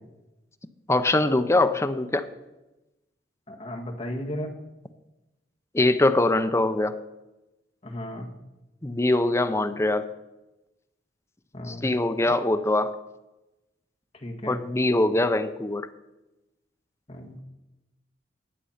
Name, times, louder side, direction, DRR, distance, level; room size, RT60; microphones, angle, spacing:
voice 1, 0.9-2.2 5.7-7.0 8.8-10.1 11.7-12.9 14.5-15.9, left 2 dB, 15° left, 10 dB, 0.6 m, -23 dB
voice 2, 3.5-4.5 7.8-8.3 11.5-11.9 14.1-14.6 17.1-17.4, left 1 dB, 35° left, 2 dB, 1.6 m, -35 dB
11.5 x 8.3 x 5.7 m, 1.0 s
head